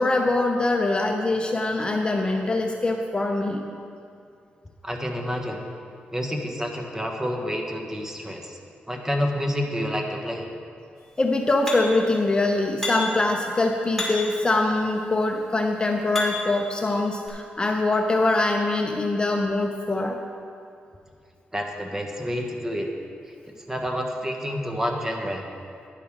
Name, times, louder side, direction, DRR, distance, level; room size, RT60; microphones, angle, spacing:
voice 1, 0.0-3.6 11.2-20.2, left 2 dB, 25° left, 2 dB, 0.7 m, -23 dB
voice 2, 4.8-5.6 6.1-8.6 8.9-10.4 21.5-22.9 23.7-25.4, equal, 15° right, 2 dB, 1.2 m, -28 dB
sound 1, 11.7-12.1 12.8-13.3 14.0-14.4 15.2-16.6 17.3-17.4, left 2 dB, 10° left, 2.5 m, -31 dB
11.0 x 10.0 x 3.7 m, 2.4 s
cardioid pair, 85°, 4 cm